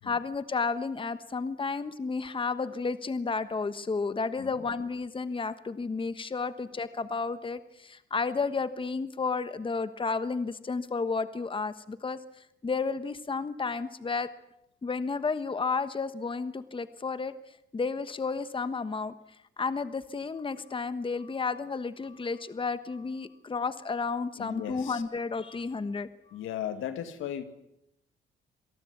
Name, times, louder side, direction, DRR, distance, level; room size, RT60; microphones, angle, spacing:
voice 1, 0.0-12.2 12.6-14.3 14.8-17.3 17.7-19.1 19.6-26.4, left 4 dB, 25° left, 12 dB, 1.3 m, -32 dB
voice 2, 24.4-25.0 26.3-27.4, left 10 dB, 85° left, 9 dB, 2.2 m, -36 dB
27.0 x 18.5 x 8.3 m, 0.80 s
cardioid pair, 90°, 20 cm